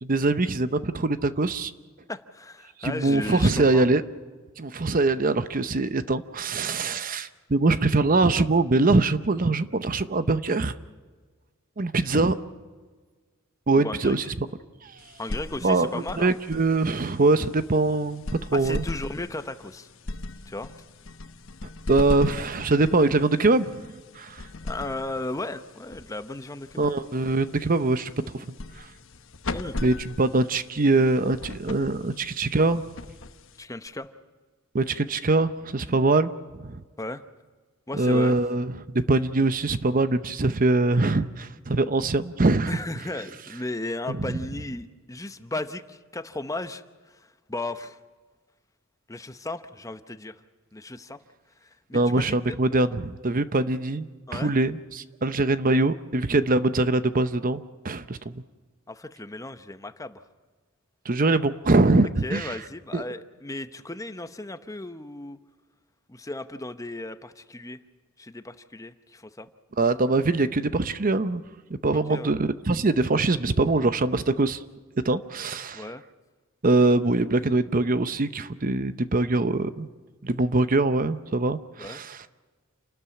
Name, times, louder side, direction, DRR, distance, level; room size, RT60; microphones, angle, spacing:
voice 1, 0.0-1.7 2.8-4.0 4.6-10.7 11.8-12.4 13.7-14.2 14.8-14.9 15.6-18.2 18.5-18.8 21.9-23.8 24.2-24.4 26.8-28.1 29.8-32.8 34.7-36.3 36.6-36.8 37.9-38.7 39.1-42.7 44.1-44.4 51.9-54.1 54.3-58.4 61.1-62.6 62.9-63.0 69.8-71.4 71.7-74.6 75.0-75.8 76.6-79.9 80.2-82.2, right 2 dB, 40° right, 12 dB, 0.8 m, -23 dB
voice 2, 2.1-3.9 13.8-14.2 15.2-16.3 18.5-19.9 20.5-20.7 24.6-26.9 29.5-29.8 33.6-34.1 35.9-36.0 37.0-37.2 37.9-38.4 42.7-48.0 49.1-50.4 50.7-51.2 51.6-52.6 54.3-54.5 58.9-60.2 62.2-65.4 66.1-67.8 68.2-69.5 71.9-72.3 75.7-76.0 81.8-82.0, left 2 dB, 15° left, 10 dB, 0.8 m, -35 dB
sound 1, 15.0-33.9, left 2 dB, 65° left, 1.0 m, -39 dB
28.5 x 13.0 x 9.8 m, 1.4 s
head